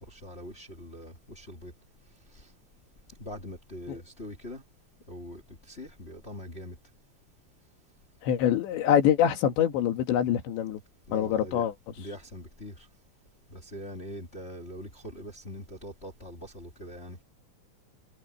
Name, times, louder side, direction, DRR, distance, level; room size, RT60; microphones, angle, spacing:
voice 1, 0.1-1.7 3.2-4.6 5.1-5.4 5.7-6.7 11.1-11.6 12.0-12.7 13.5-17.2, equal, 25° left, 1.5 m, -42 dB
voice 2, 8.2-10.8 11.1-12.1, left 10 dB, 80° left, 4.4 m, -25 dB
omnidirectional pair, 5.0 m